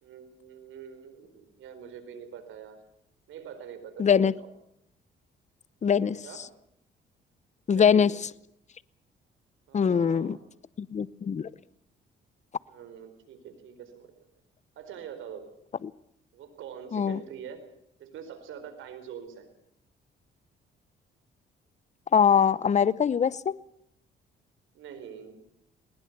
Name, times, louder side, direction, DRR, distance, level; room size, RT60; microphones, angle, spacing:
voice 1, 0.0-2.8 3.3-4.5 6.2-6.5 7.7-8.1 9.7-10.4 12.7-14.1 14.8-15.4 16.3-17.6 18.0-19.5 24.7-25.4, right 8 dB, 80° right, 4.4 m, -44 dB
voice 2, 4.0-4.3 5.8-6.2 7.7-8.1 9.7-10.4 10.8-11.5 16.9-17.2 22.1-23.6, left 7 dB, 35° left, 0.8 m, -22 dB
20.0 x 20.0 x 8.2 m
cardioid pair, 90°, 20 cm